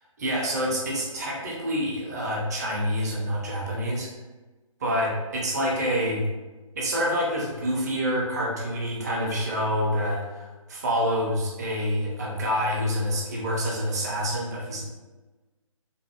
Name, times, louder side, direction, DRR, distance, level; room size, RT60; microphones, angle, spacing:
voice 1, 0.2-4.1 4.8-6.3 6.7-14.8, equal, 30° right, -3 dB, 0.6 m, -27 dB
3.1 x 2.0 x 2.8 m, 1.2 s
figure-of-eight pair, 145°, 18 cm